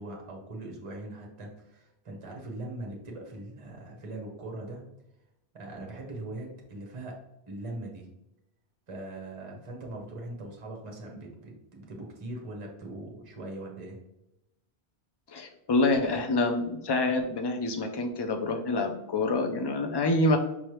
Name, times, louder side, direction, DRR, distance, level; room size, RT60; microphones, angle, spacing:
voice 1, 0.0-4.8 5.5-8.1 8.9-14.0, right 2 dB, 35° right, 0 dB, 0.9 m, -41 dB
voice 2, 15.3-20.4, left 2 dB, 35° left, 4 dB, 0.4 m, -27 dB
5.3 x 3.2 x 3.0 m, 0.87 s
omnidirectional pair, 1.1 m